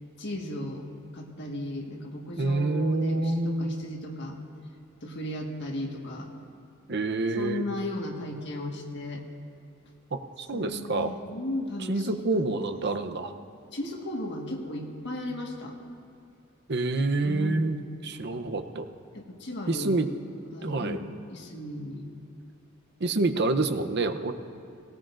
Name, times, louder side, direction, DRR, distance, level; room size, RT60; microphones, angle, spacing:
voice 1, 0.2-0.9 1.1-4.4 5.0-6.3 7.3-9.2 10.5-12.3 13.7-15.8 17.2-17.9 19.1-20.0 20.5-22.1, left 1 dB, 55° left, 1 dB, 1.6 m, -35 dB
voice 2, 2.4-3.8 6.9-7.6 10.1-11.1 11.9-13.3 16.7-17.8 18.0-18.9 19.7-20.1 20.6-21.0 23.0-24.3, right 2 dB, 50° right, 7 dB, 0.7 m, -27 dB
18.5 x 18.0 x 2.5 m, 2.4 s
head